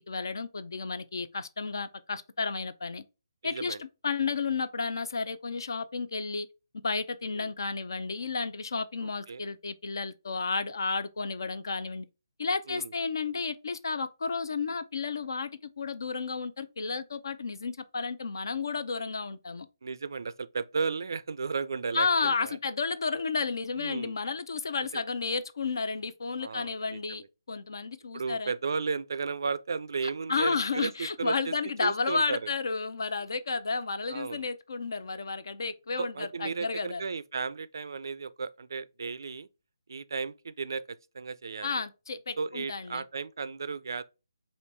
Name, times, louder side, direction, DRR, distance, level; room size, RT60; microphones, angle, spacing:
voice 1, 0.0-3.0 3.4-6.5 6.8-12.1 12.4-19.7 21.9-28.5 30.3-37.0 41.6-43.0, left 4 dB, 60° left, 0.5 m, -32 dB
voice 2, 3.4-3.8 7.3-7.5 9.0-9.4 12.7-12.9 19.8-22.6 23.8-24.2 24.8-25.0 26.4-27.3 28.1-31.5 31.8-32.5 34.1-34.5 36.0-39.5 39.9-41.8 42.4-44.0, right 5 dB, 60° right, 0.4 m, -34 dB
5.0 x 2.6 x 3.2 m
figure-of-eight pair, 145°, 2 cm